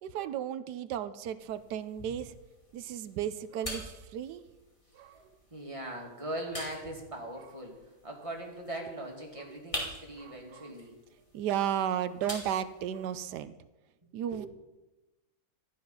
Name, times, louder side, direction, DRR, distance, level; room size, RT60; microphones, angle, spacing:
voice 1, 0.0-2.4 2.7-4.4 4.9-5.2 7.3-7.5 8.8-8.9 9.3-9.6 10.2-10.8 11.3-13.5 14.1-14.5, right 10 dB, 85° right, 13 dB, 1.2 m, -34 dB
sound 1, 1.4-13.4, equal, 20° left, 2.3 m, -46 dB
voice 2, 5.5-7.7 8.0-11.0 14.3-14.4, right 1 dB, 20° right, 0 dB, 2.3 m, -40 dB
13.0 x 10.5 x 5.6 m, 1.1 s
omnidirectional pair, 1.7 m